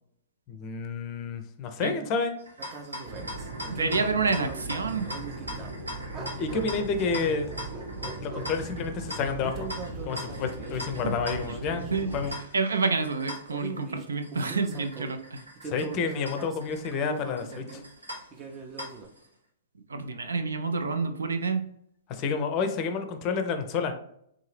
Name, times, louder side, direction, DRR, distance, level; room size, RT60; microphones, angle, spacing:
voice 1, 0.5-2.3 6.4-7.5 8.2-9.7 10.0-12.3 15.6-17.8 22.1-23.9, left 5 dB, 35° left, 7 dB, 0.5 m, -30 dB
sound 1, 2.4-19.3, left 1 dB, 90° right, 0.9 m, -42 dB
sound 2, 2.6-5.8 6.1-8.6 9.4-12.4 13.3-15.2 15.6-17.9 18.3-19.1, right 4 dB, 25° right, 0.6 m, -42 dB
sound 3, 3.0-12.4, right 2 dB, 55° right, 0.9 m, -39 dB
voice 2, 3.7-5.1 11.0-11.1 11.9-12.1 12.5-15.4 19.9-21.7, right 4 dB, 75° right, 7 dB, 0.4 m, -28 dB
3.6 x 2.7 x 3.2 m, 0.72 s
figure-of-eight pair, 110°, 0 cm